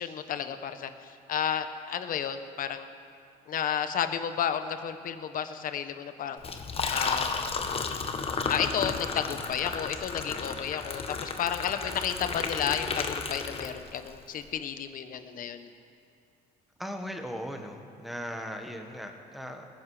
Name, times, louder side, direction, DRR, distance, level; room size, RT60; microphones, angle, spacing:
voice 1, 0.0-2.9 3.5-6.4 6.9-7.3 8.5-15.7, left 8 dB, 55° left, 9 dB, 1.0 m, -32 dB
Liquid, 6.4-14.1, left 5 dB, 35° left, 1.2 m, -33 dB
voice 2, 16.8-19.7, equal, ahead, 4 dB, 1.6 m, -38 dB
20.5 x 10.5 x 5.0 m, 2.7 s
cardioid pair, 110°, 17 cm